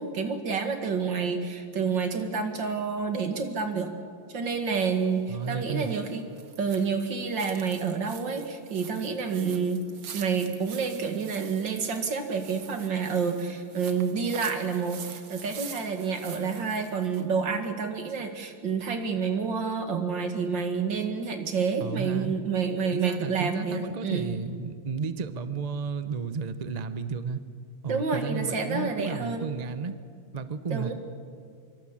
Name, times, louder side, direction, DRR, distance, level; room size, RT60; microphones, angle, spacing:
voice 1, 0.0-3.9 4.3-6.2 6.6-9.8 10.1-24.3 27.9-29.5 30.7-30.9, right 5 dB, 60° right, 6 dB, 2.7 m, -29 dB
sound 1, 5.0-17.3, right 7 dB, 85° right, 2.4 m, -46 dB
voice 2, 5.3-5.9 21.8-22.3 22.9-27.4 27.8-29.9 30.3-30.9, right 5 dB, 35° right, 11 dB, 0.6 m, -33 dB
25.0 x 24.0 x 7.4 m, 2.2 s
omnidirectional pair, 2.3 m